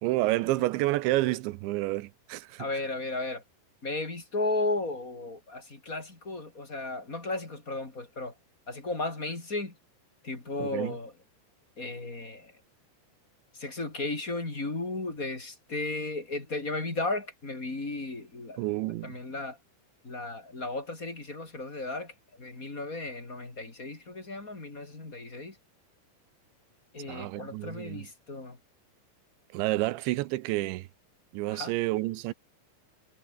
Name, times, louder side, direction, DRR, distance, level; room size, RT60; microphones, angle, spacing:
voice 1, 0.0-2.6 10.6-11.0 18.6-19.2 27.1-28.1 29.5-30.9 31.3-32.3, right 18 dB, 80° right, 2.8 m, -29 dB
voice 2, 2.6-3.4 3.8-8.3 8.7-9.7 10.2-11.1 11.8-12.5 13.5-18.6 19.0-19.6 20.0-25.6 26.9-28.6 31.5-31.7, left 2 dB, 20° left, 3.8 m, -35 dB
omnidirectional pair, 5.8 m